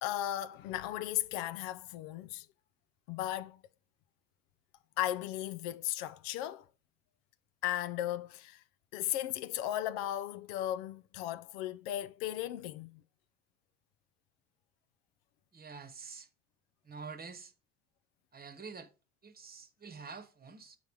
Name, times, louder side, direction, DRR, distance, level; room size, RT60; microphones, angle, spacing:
voice 1, 0.0-2.5 3.1-3.6 5.0-6.6 7.6-8.6 8.9-13.0, left 13 dB, 80° left, 0.5 m, -36 dB
voice 2, 15.5-16.3 16.8-17.5 18.3-18.9 19.2-20.8, right 5 dB, 30° right, 1.0 m, -47 dB
7.1 x 3.9 x 4.6 m
hypercardioid pair, 60°, 31 cm